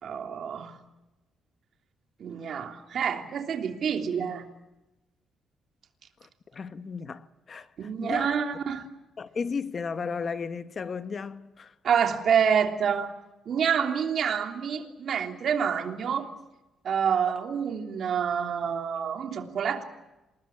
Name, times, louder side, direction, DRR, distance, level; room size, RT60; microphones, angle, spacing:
voice 1, 0.0-0.8 2.2-4.4 7.8-8.8 11.8-13.1 13.4-16.3 16.8-19.8, right 7 dB, 55° right, 3.2 m, -27 dB
voice 2, 6.2-8.4 9.2-11.7 17.2-17.4, left 5 dB, 35° left, 1.2 m, -35 dB
27.0 x 21.0 x 8.8 m
cardioid pair, 125°, 0 cm